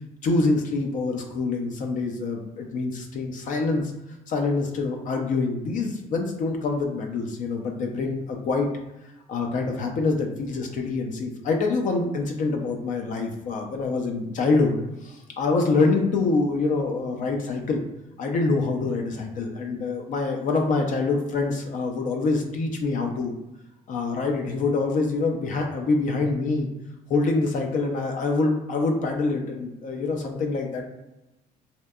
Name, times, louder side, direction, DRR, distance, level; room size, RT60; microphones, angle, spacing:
voice 1, 0.2-3.9 4.3-8.7 9.3-17.8 18.2-23.3 23.9-26.7 27.1-30.8, left 3 dB, 50° left, 3 dB, 0.4 m, -25 dB
2.7 x 2.1 x 2.3 m, 0.94 s
cardioid pair, 110°, 17 cm